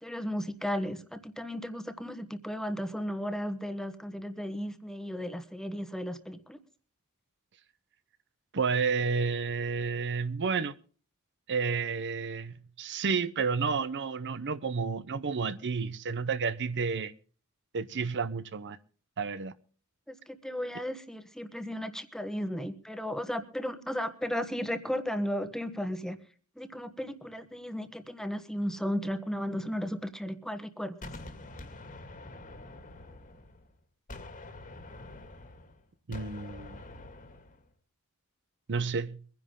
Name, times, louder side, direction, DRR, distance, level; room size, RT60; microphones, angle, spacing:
voice 1, 0.0-6.6 20.1-26.2 26.6-31.0, equal, ahead, 1.2 m, -35 dB
voice 2, 8.5-10.7 11.5-17.1 17.7-18.8 19.2-19.5 36.1-36.8 38.7-39.2, right 5 dB, 55° right, 0.7 m, -31 dB
Gunshot gunfire, 31.0-33.7 34.1-37.6, left 2 dB, 40° left, 2.1 m, -46 dB
23.5 x 10.5 x 3.7 m
head